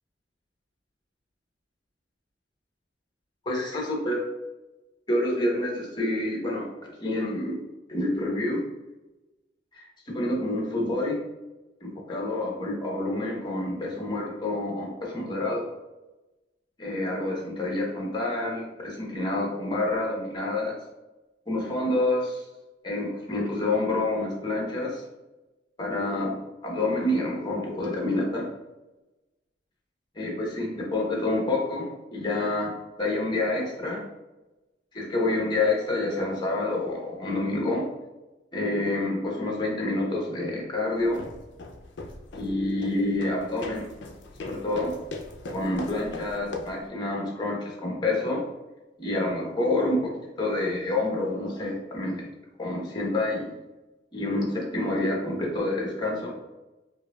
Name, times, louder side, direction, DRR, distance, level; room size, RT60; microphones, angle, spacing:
voice 1, 3.5-4.2 5.1-7.6 7.9-8.6 9.8-11.2 11.8-15.7 16.8-20.8 21.5-22.4 22.8-25.0 25.8-26.3 26.6-28.5 30.2-34.0 34.9-37.9 38.5-41.2 42.3-43.9 44.4-44.9 45.5-48.4 49.0-52.2 52.6-53.5 54.1-56.3, left 2 dB, 25° left, -1 dB, 0.9 m, -28 dB
sound 1, 41.0-46.9, left 2 dB, 75° left, 0.5 m, -40 dB
4.7 x 2.6 x 2.3 m, 1.0 s
head